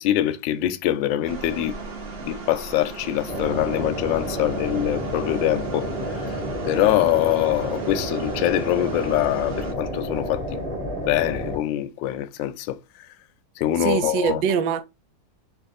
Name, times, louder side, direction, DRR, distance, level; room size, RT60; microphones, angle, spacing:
voice 1, 0.0-1.7 2.2-5.9 6.6-10.4 11.0-12.8 13.6-14.4, left 13 dB, 80° left, 1.2 m, -24 dB
sound 1, 1.3-9.7, right 4 dB, 55° right, 0.6 m, -37 dB
sound 2, 3.3-11.6, equal, 5° left, 1.1 m, -30 dB
voice 2, 13.8-14.8, right 7 dB, 75° right, 1.2 m, -23 dB
4.5 x 2.6 x 4.1 m
omnidirectional pair, 2.1 m